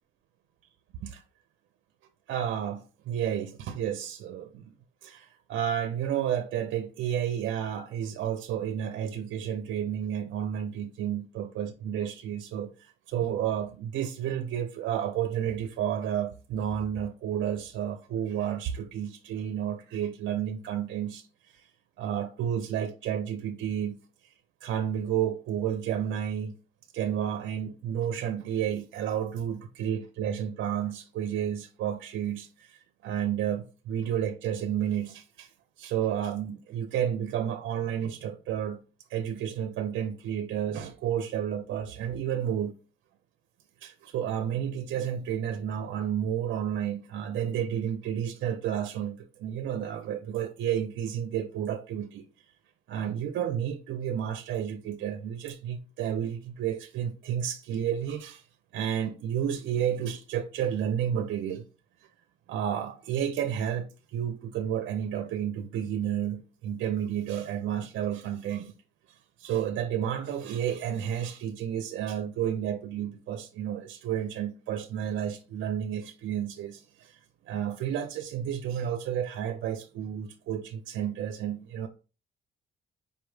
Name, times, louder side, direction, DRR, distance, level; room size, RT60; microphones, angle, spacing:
voice 1, 2.3-4.7 5.0-21.7 22.0-24.0 24.6-26.6 26.9-35.5 35.8-38.8 39.1-42.7 43.8-52.3 52.9-58.5 58.7-61.6 62.5-68.7 69.1-77.2 77.5-81.9, right 9 dB, 75° right, 0.5 m, -31 dB
5.3 x 2.1 x 4.7 m
cardioid pair, 90°, 20 cm